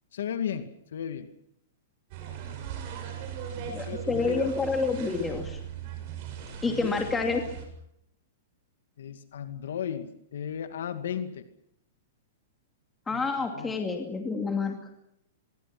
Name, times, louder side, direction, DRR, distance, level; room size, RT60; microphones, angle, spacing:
voice 1, 0.1-1.3 3.6-4.5 6.6-6.9 9.0-11.4 13.1-13.8, left 8 dB, 80° left, 9 dB, 2.2 m, -35 dB
sound 1, 2.1-7.7, right 8 dB, 45° right, 7.1 m, -39 dB
voice 2, 3.7-5.6 6.6-7.5 13.1-14.7, left 4 dB, 10° left, 3 dB, 2.5 m, -28 dB
26.5 x 23.0 x 6.1 m, 0.75 s
hypercardioid pair, 150°, 0 cm